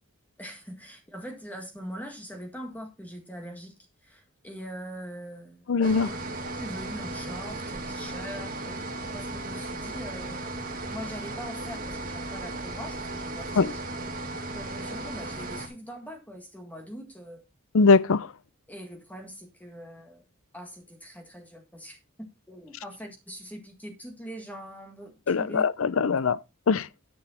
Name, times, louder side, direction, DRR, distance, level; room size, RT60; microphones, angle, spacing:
voice 1, 0.4-3.7 4.0-5.7 6.0-6.1 6.6-8.8 9.1-10.5 10.9-13.8 14.5-17.4 18.7-20.2 20.5-25.6, equal, 5° left, 1.9 m, -42 dB
voice 2, 5.7-6.1 13.6-13.7 17.7-18.3 25.3-26.4 26.7-26.9, left 4 dB, 70° left, 0.5 m, -21 dB
sound 1, 5.8-15.7, right 2 dB, 40° right, 2.1 m, -36 dB
10.5 x 6.4 x 4.3 m
head